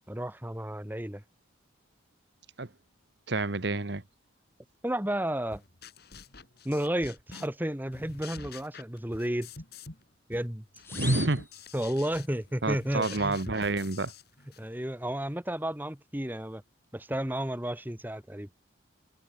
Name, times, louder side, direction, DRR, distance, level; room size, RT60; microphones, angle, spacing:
voice 1, 0.1-1.2 4.8-5.6 6.6-9.5 10.3-10.6 11.7-13.4 14.6-16.6 16.9-18.5, right 1 dB, 10° right, 1.5 m, -32 dB
voice 2, 3.3-4.0 10.9-11.5 12.6-14.1, right 2 dB, 55° right, 1.3 m, -28 dB
sound 1, 5.5-7.6 7.9-10.0 10.3-14.7, left 4 dB, 50° left, 2.8 m, -47 dB
sound 2, 10.8-12.4, left 4 dB, 10° left, 0.6 m, -41 dB
head